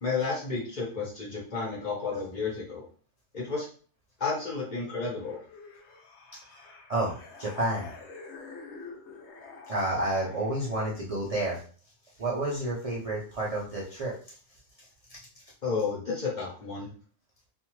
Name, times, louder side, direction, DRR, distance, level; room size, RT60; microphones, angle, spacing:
voice 1, 0.0-2.8 3.3-3.7 4.2-5.4 15.6-16.9, left 4 dB, 35° left, -5 dB, 1.0 m, -31 dB
sound 1, 5.2-11.0, left 4 dB, 65° left, 0.8 m, -47 dB
voice 2, 6.9-7.9 9.7-11.6 12.2-14.1 15.1-15.2, right 1 dB, 65° right, -5 dB, 0.3 m, -30 dB
2.5 x 2.3 x 3.0 m, 0.42 s
omnidirectional pair, 1.5 m